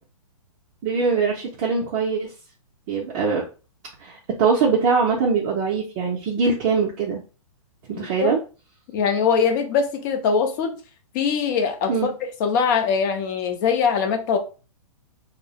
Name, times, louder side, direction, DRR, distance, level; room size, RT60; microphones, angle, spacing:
voice 1, 0.8-2.3 2.9-3.4 4.0-7.2 7.9-8.4 11.9-12.1, right 5 dB, 30° right, 0.4 m, -22 dB
voice 2, 8.9-10.7 11.1-12.1 12.4-14.4, left 6 dB, 35° left, 0.5 m, -22 dB
2.3 x 2.0 x 2.8 m
hypercardioid pair, 145°, 18 cm